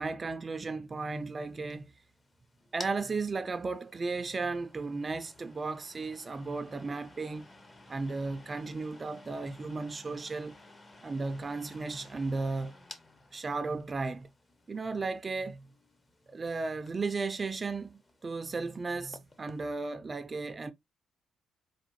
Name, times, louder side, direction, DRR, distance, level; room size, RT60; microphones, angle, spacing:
voice 1, 0.0-1.9 2.7-7.5 7.9-10.6 11.0-12.8 13.3-14.3 14.7-15.7 16.3-20.7, right 3 dB, 30° right, 0.3 m, -35 dB
sound 1, 1.0-19.7, left 2 dB, 25° left, 0.6 m, -55 dB
4.5 x 2.1 x 3.0 m
cardioid pair, 90°, 0 cm